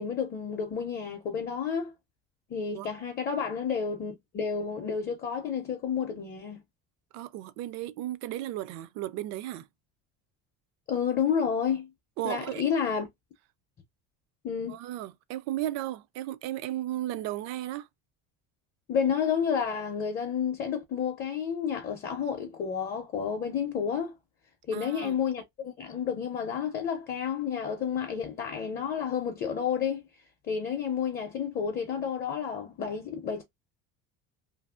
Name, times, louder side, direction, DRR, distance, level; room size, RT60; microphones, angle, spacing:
voice 1, 0.0-1.9 2.5-6.6 10.9-11.9 12.2-13.1 14.4-14.8 18.9-24.1 24.7-30.0 30.5-33.4, left 7 dB, 30° left, 0.5 m, -30 dB
voice 2, 7.1-9.7 12.2-12.6 14.7-17.9 24.7-25.2, right 14 dB, 55° right, 0.4 m, -35 dB
2.7 x 2.6 x 2.3 m
cardioid pair, 160°, 32 cm